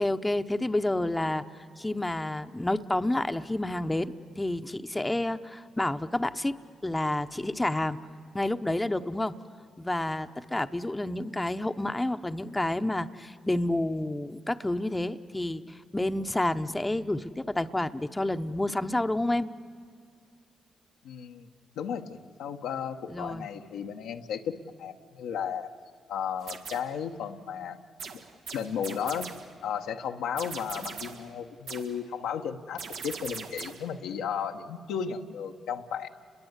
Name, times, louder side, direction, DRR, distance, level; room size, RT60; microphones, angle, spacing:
voice 1, 0.0-1.4 1.8-8.0 8.3-9.4 9.8-19.5 23.1-23.5, left 1 dB, 15° left, 9 dB, 0.9 m, -29 dB
voice 2, 21.0-21.5 21.8-25.7 26.1-27.8 28.5-29.3 29.6-36.1, left 7 dB, 85° left, 4 dB, 1.1 m, -34 dB
sound 1, 26.4-27.0 28.0-29.6 30.4-31.3 31.7-32.0 32.8-33.9, right 5 dB, 85° right, 2.0 m, -41 dB
30.0 x 22.0 x 8.2 m, 2.2 s
supercardioid pair, 55°, 0 cm